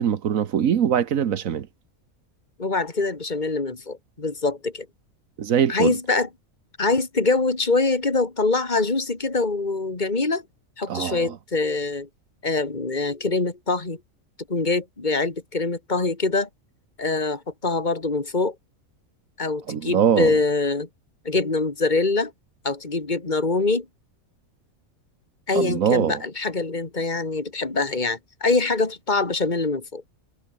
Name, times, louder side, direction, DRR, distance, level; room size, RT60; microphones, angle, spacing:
voice 1, 0.0-1.7 5.4-5.9 10.9-11.4 19.7-20.4 25.5-26.2, right 8 dB, 70° right, 1.4 m, -22 dB
voice 2, 2.6-4.9 5.7-6.3 6.8-10.4 10.8-12.1 12.4-14.0 14.5-16.5 17.0-18.6 19.4-20.9 21.2-22.3 22.6-23.9 25.5-30.0, left 3 dB, 30° left, 3.0 m, -24 dB
omnidirectional pair, 1.5 m